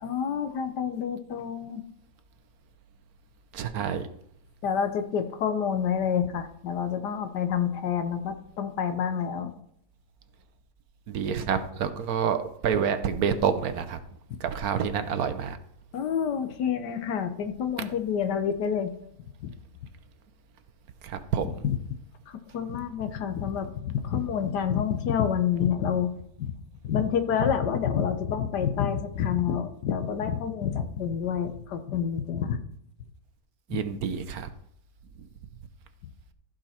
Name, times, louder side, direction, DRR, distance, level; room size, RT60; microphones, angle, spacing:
voice 1, 0.0-1.8 4.6-9.5 15.9-18.9 19.4-19.5 21.6-21.8 22.3-26.1 26.4-26.5 26.8-32.6 33.7-33.8, left 8 dB, 85° left, 9 dB, 1.6 m, -28 dB
voice 2, 3.5-4.1 11.1-14.0 14.4-15.6 21.0-21.5 33.7-34.5, right 7 dB, 65° right, 10 dB, 1.3 m, -28 dB
14.5 x 5.3 x 4.3 m, 0.71 s
omnidirectional pair, 1.7 m